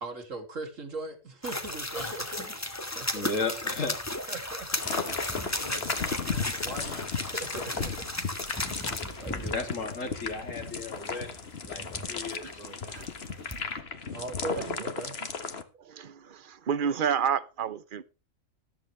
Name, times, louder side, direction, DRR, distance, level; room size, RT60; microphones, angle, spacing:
voice 1, 0.0-3.3 4.3-5.0 5.3-7.9 9.2-9.6 14.1-15.2, right 3 dB, 80° right, 2.9 m, -40 dB
sound 1, 1.4-13.8, left 1 dB, 15° left, 1.5 m, -36 dB
sound 2, 1.9-3.1 3.7-4.0 4.7-5.1 5.6-6.4 6.7-7.3, left 2 dB, 30° left, 1.8 m, -47 dB
voice 2, 3.1-4.0 9.5-11.4 11.6-13.1, left 3 dB, 80° left, 3.0 m, -35 dB
sound 3, 4.7-15.6, left 5 dB, 50° left, 1.6 m, -35 dB
voice 3, 15.8-18.0, right 7 dB, 45° right, 1.0 m, -30 dB
14.0 x 13.0 x 3.3 m
omnidirectional pair, 1.3 m